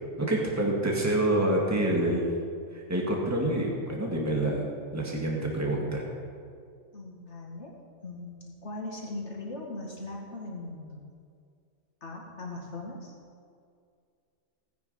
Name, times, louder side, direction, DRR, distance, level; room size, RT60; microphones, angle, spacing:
voice 1, 0.2-2.2 2.7-4.7 4.9-6.0, right 1 dB, 15° right, -1 dB, 1.9 m, -27 dB
voice 2, 6.9-7.7 8.0-11.0 12.0-13.1, left 2 dB, 75° left, -2 dB, 2.7 m, -39 dB
16.5 x 9.6 x 5.6 m, 2.3 s
omnidirectional pair, 1.2 m